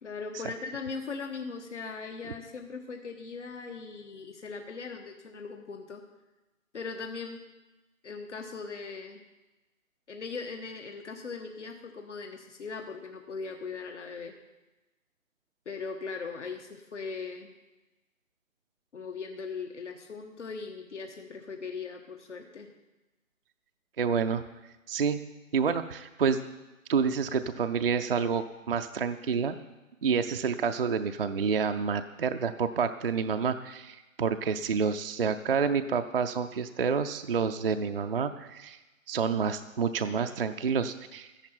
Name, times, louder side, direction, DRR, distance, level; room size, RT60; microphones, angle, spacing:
voice 1, 0.0-6.0 6.7-7.4 8.0-9.2 10.1-14.3 15.6-17.5 18.9-22.7, left 4 dB, 60° left, 4 dB, 1.4 m, -39 dB
voice 2, 24.0-24.4 24.9-25.2 25.5-26.4 26.9-29.6 30.0-38.8 39.1-41.3, right 6 dB, 45° right, 7 dB, 0.5 m, -28 dB
13.5 x 11.0 x 4.4 m, 1.1 s
figure-of-eight pair, 150°, 41 cm